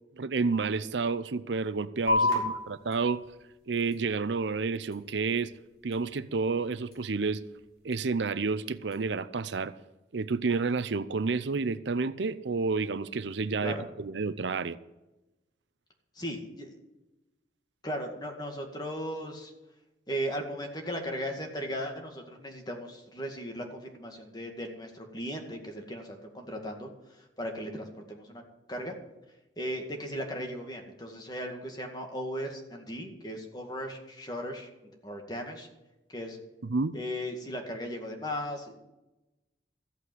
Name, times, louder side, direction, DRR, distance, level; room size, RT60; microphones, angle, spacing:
voice 1, 0.2-3.2 3.7-5.5 5.8-7.4 7.8-9.7 10.1-14.8 36.6-36.9, right 4 dB, 75° right, 15 dB, 0.6 m, -30 dB
sound 1, 2.1-9.1, left 2 dB, 55° left, 5.0 m, -35 dB
voice 2, 16.2-16.8 17.8-19.5 20.1-26.9 27.4-28.4 28.7-29.0 29.6-34.7 35.0-35.7 36.1-36.4 36.9-38.8, equal, 20° left, 2 dB, 2.2 m, -37 dB
14.0 x 8.4 x 7.9 m, 0.98 s
head